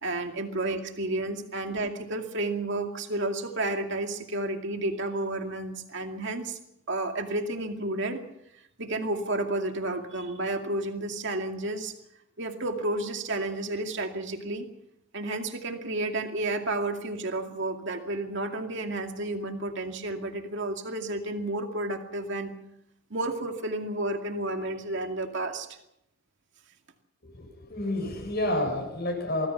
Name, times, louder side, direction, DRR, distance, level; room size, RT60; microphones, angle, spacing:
voice 1, 0.0-6.6 6.9-8.2 8.8-11.9 12.4-14.7 15.1-22.5 23.1-25.7, right 2 dB, 60° right, 4 dB, 2.3 m, -31 dB
voice 2, 27.2-29.5, left 1 dB, 50° left, 1 dB, 7.8 m, -30 dB
25.0 x 20.5 x 5.8 m, 0.81 s
head